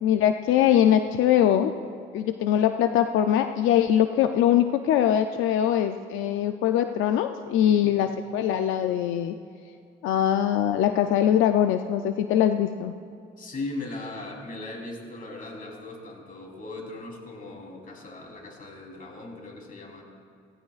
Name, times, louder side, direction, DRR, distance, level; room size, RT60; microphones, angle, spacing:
voice 1, 0.0-1.7 2.1-9.3 10.0-12.9, left 10 dB, 90° left, 7 dB, 0.5 m, -22 dB
voice 2, 13.4-20.0, left 2 dB, 45° left, 0 dB, 3.4 m, -38 dB
17.0 x 16.5 x 2.4 m, 2.5 s
cardioid pair, 90°, 20 cm